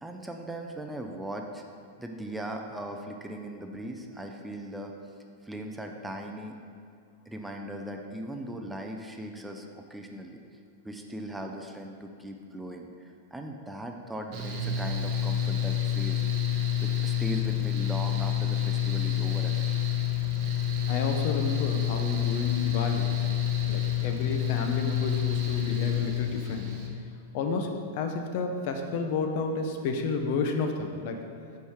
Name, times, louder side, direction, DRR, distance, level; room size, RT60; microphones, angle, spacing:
voice 1, 0.0-1.6 2.0-4.9 5.4-6.6 7.3-10.4 10.8-16.2 16.8-19.6, right 1 dB, 5° right, 2 dB, 0.4 m, -39 dB
Mechanical fan, 14.3-26.9, left 10 dB, 40° right, 0.9 m, -28 dB
voice 2, 20.9-23.2 23.6-26.8 27.3-31.2, left 4 dB, 45° left, 4 dB, 0.6 m, -31 dB
5.4 x 4.6 x 4.6 m, 2.4 s
figure-of-eight pair, 95°, 0 cm